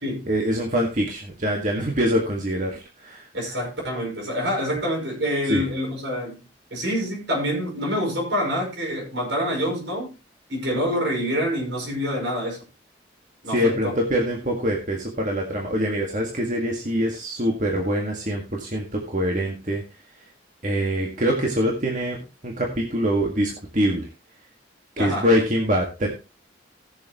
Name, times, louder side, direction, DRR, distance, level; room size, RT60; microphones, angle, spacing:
voice 1, 0.3-3.3 5.5-5.6 13.5-19.8 20.6-22.2 22.4-24.1 25.0-26.1, equal, 40° right, 1.8 m, -24 dB
voice 2, 3.3-6.4 6.7-10.1 10.5-12.6 13.4-13.9 25.0-25.3, equal, 75° right, 5.5 m, -26 dB
18.5 x 6.9 x 3.0 m
head